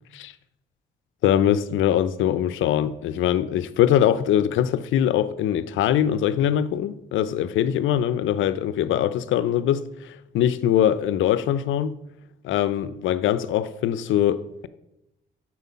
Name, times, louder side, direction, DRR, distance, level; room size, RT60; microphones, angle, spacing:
voice 1, 1.2-12.0 12.4-14.7, left 10 dB, 80° left, 0.5 m, -22 dB
8.2 x 4.4 x 5.6 m
cardioid pair, 90°, 20 cm